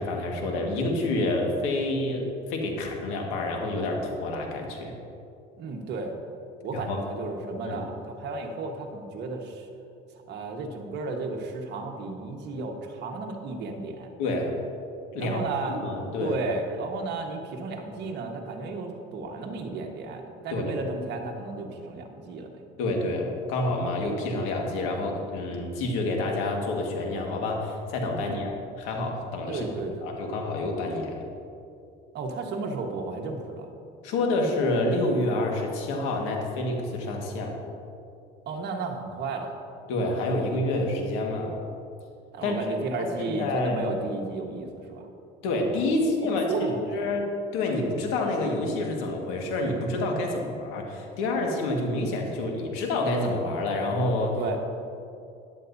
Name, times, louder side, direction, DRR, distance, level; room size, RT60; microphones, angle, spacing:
voice 1, 0.0-4.9 6.7-7.0 7.6-7.8 14.2-14.5 15.1-15.4 15.7-16.4 20.5-20.8 22.8-28.5 28.8-29.7 30.0-31.2 34.0-37.6 39.9-41.6 42.4-42.6 43.2-43.8 45.4-46.7 46.9-47.3 47.5-54.4, left 2 dB, 80° left, 1 dB, 1.8 m, -28 dB
voice 2, 5.6-6.1 6.6-9.7 10.3-14.1 15.2-15.8 16.2-22.5 28.2-28.5 29.5-30.1 32.1-33.7 38.5-39.5 42.3-45.1 46.2-47.1 54.4-54.6, right 3 dB, 55° right, 2 dB, 1.4 m, -33 dB
14.0 x 10.5 x 2.7 m, 2.6 s
cardioid pair, 110°, 21 cm